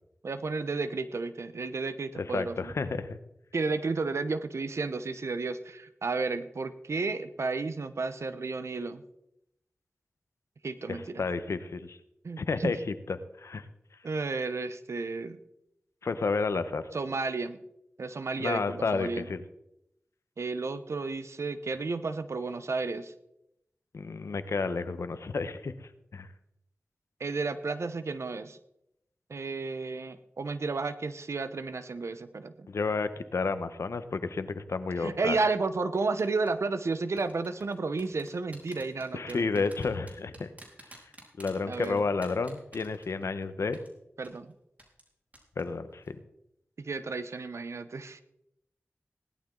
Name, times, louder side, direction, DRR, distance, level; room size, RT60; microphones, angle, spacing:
voice 1, 0.2-2.7 3.5-9.0 10.6-11.2 12.2-12.8 14.0-15.4 16.9-17.6 18.0-19.3 20.4-23.1 27.2-28.6 29.3-32.7 35.0-39.7 41.7-42.0 44.2-44.5 46.8-48.2, right 3 dB, 80° right, 12 dB, 0.9 m, -32 dB
voice 2, 2.1-3.2 10.9-12.0 12.4-13.6 16.0-16.8 18.4-19.4 23.9-26.3 32.7-35.4 39.1-40.5 41.4-43.8 45.6-46.2, left 4 dB, 90° left, 11 dB, 1.0 m, -31 dB
sound 1, 36.2-36.5 37.2-43.4 43.7-43.9 44.2-44.4 44.8-45.1 45.3-45.6 45.9-46.1, right 1 dB, 35° right, 4.3 m, -50 dB
17.5 x 12.0 x 3.9 m, 0.81 s
wide cardioid pair, 50°, 5 cm